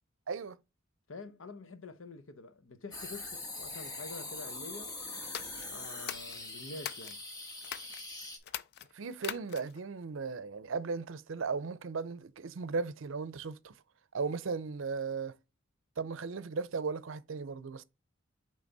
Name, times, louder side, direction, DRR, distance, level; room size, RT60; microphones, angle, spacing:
voice 1, 0.3-0.6 8.9-13.7 14.1-15.4 16.0-17.8, right 4 dB, 75° right, 0.5 m, -36 dB
voice 2, 1.1-5.0 5.7-7.2, left 3 dB, 75° left, 0.8 m, -47 dB
sound 1, 2.9-8.4, left 2 dB, 20° left, 1.2 m, -42 dB
sound 2, 5.2-7.2 7.6-8.0 8.4-9.8, left 10 dB, 55° left, 0.4 m, -42 dB
8.8 x 3.3 x 3.9 m
head